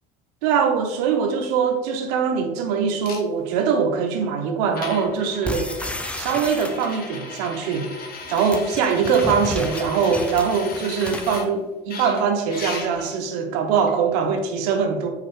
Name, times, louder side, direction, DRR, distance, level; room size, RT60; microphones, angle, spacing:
voice 1, 0.4-5.7 6.1-7.9 8.3-15.1, right 6 dB, 75° right, 0.7 m, -22 dB
sound 1, 3.0-3.2 4.2-4.3 4.7-11.5 11.9-13.1 13.9-14.0, left 4 dB, 50° left, 1.0 m, -37 dB
sound 2, 5.4-7.2 8.1-11.4, left 1 dB, 5° left, 0.4 m, -32 dB
4.5 x 3.7 x 3.1 m
hypercardioid pair, 60°, 20 cm